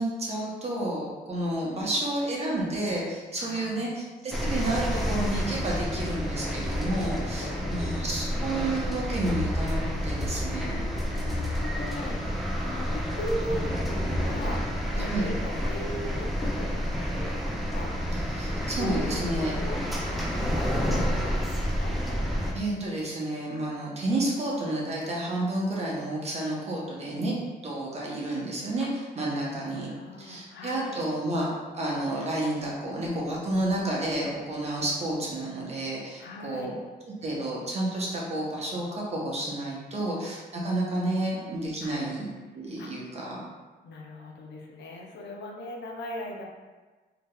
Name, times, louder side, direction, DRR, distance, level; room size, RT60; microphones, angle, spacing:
voice 1, 0.0-10.8 15.1-15.3 18.3-19.6 22.5-27.3 27.6-29.9 30.2-31.5 31.7-36.8 37.2-42.3 42.5-43.4, right 1 dB, 35° right, -4 dB, 0.7 m, -30 dB
voice 2, 1.6-2.1 3.4-3.9 7.4-8.4 10.5-16.8 17.1-17.9 18.5-21.9 28.0-28.3 28.8-28.9 29.3-31.0 33.9-34.0 36.2-36.7 39.9-40.2 41.8-42.1 42.8-43.1 43.8-46.4, left 1 dB, 85° left, 0 dB, 0.5 m, -40 dB
sound 1, 4.3-22.5, equal, ahead, 0.3 m, -29 dB
3.3 x 2.8 x 2.2 m, 1.3 s
wide cardioid pair, 140°, 18 cm